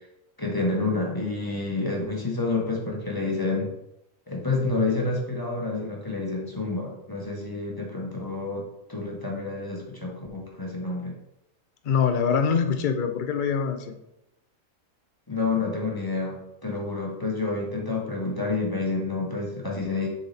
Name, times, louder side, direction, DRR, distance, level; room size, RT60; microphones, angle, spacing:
voice 1, 0.4-3.7 4.3-11.1 15.3-20.1, left 3 dB, 15° left, -1 dB, 1.2 m, -29 dB
voice 2, 11.8-14.0, left 6 dB, 50° left, 7 dB, 0.6 m, -24 dB
6.7 x 4.3 x 4.1 m, 0.86 s
omnidirectional pair, 1.5 m